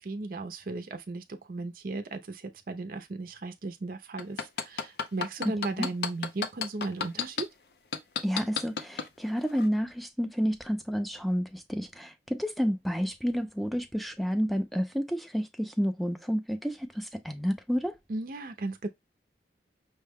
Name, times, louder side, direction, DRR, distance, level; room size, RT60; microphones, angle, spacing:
voice 1, 0.0-7.5 18.1-18.9, right 2 dB, 50° right, 0.6 m, -36 dB
sound 1, 4.2-7.4 7.9-9.1 9.6-9.7, left 6 dB, 65° left, 0.5 m, -30 dB
voice 2, 5.4-5.9 8.2-18.0, equal, ahead, 0.4 m, -30 dB
5.5 x 2.1 x 3.4 m
head